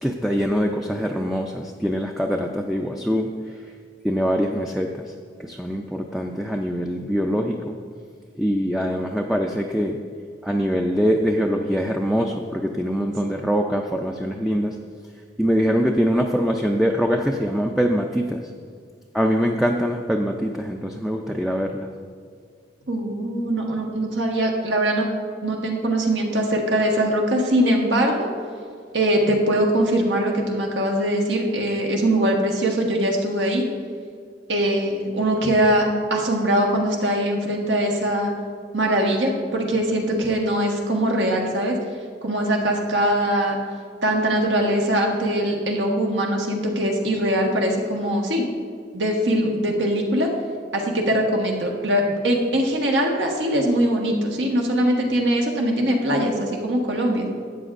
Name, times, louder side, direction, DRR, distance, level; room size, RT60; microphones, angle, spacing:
voice 1, 0.0-3.3 4.0-5.0 5.4-7.8 8.4-10.0 10.4-14.8 15.4-18.4 19.1-21.9, equal, ahead, 1 dB, 0.4 m, -23 dB
voice 2, 22.9-25.1 25.4-28.3 28.9-33.6 34.5-38.3 38.7-41.8 42.2-43.6 44.0-48.4 48.9-50.3 50.7-57.3, right 1 dB, 85° right, 0 dB, 1.4 m, -22 dB
13.0 x 8.7 x 2.5 m, 2.1 s
head